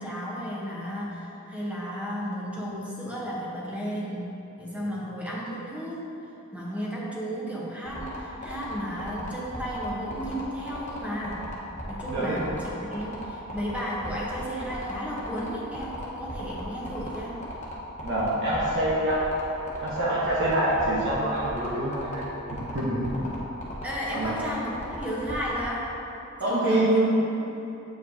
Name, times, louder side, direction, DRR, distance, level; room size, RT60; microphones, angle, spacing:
voice 1, 0.0-4.3 4.6-6.1 6.5-11.5 11.9-17.4 23.8-25.9 26.4-27.1 27.5-27.6, equal, 5° right, -6 dB, 1.0 m, -33 dB
sound 1, 7.9-25.6, left 1 dB, 35° left, 1.1 m, -37 dB
voice 2, 12.1-12.4 18.0-19.3 19.8-22.2 22.7-23.3 24.1-24.4 26.4-27.1, right 1 dB, 60° right, -8 dB, 1.1 m, -25 dB
8.1 x 5.1 x 2.7 m, 2.9 s
head